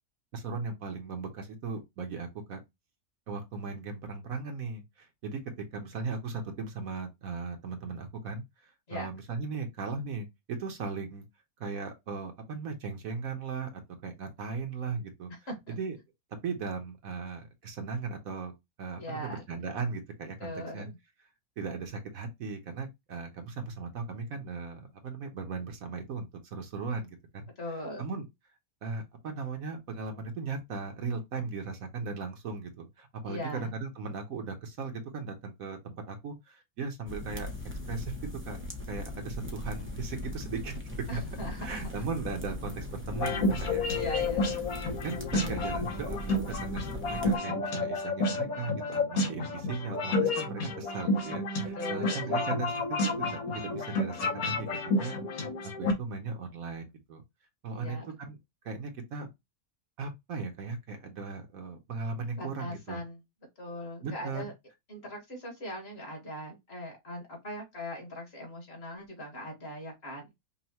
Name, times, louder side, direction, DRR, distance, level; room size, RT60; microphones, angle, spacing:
voice 1, 0.3-2.6 3.3-11.2 11.6-15.3 15.7-16.0 16.4-18.5 18.8-20.9 21.6-27.5 28.0-28.3 28.8-37.5 37.9-38.1 38.5-38.6 38.9-40.7 41.1-41.2 41.6-43.9 44.8-46.8 47.0-52.8 53.2-54.7 55.0-55.2 55.8-57.2 57.6-58.4 58.6-59.3 60.0-63.0 64.0-64.4, right 4 dB, 70° right, 1.3 m, -37 dB
voice 2, 19.0-19.4 20.4-21.0 27.6-28.1 33.3-33.7 41.1-41.8 43.9-44.6 51.7-52.3 57.7-58.1 62.3-63.2 63.6-64.5 64.9-70.3, equal, 45° left, 1.9 m, -40 dB
sound 1, 37.1-47.4, left 1 dB, 15° right, 0.5 m, -39 dB
sound 2, 43.2-55.9, left 2 dB, 70° left, 1.5 m, -30 dB
5.5 x 2.4 x 2.9 m
omnidirectional pair, 1.6 m